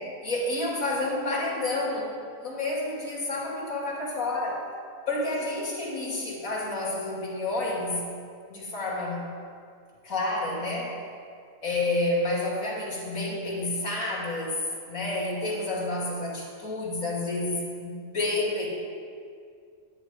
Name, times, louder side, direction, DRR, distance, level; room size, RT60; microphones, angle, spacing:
voice 1, 0.0-2.1 2.4-4.6 5.1-8.2 8.5-9.2 10.0-11.0 11.6-18.7, left 2 dB, 60° left, -4 dB, 2.7 m, -29 dB
10.0 x 9.5 x 5.1 m, 2.3 s
omnidirectional pair, 1.6 m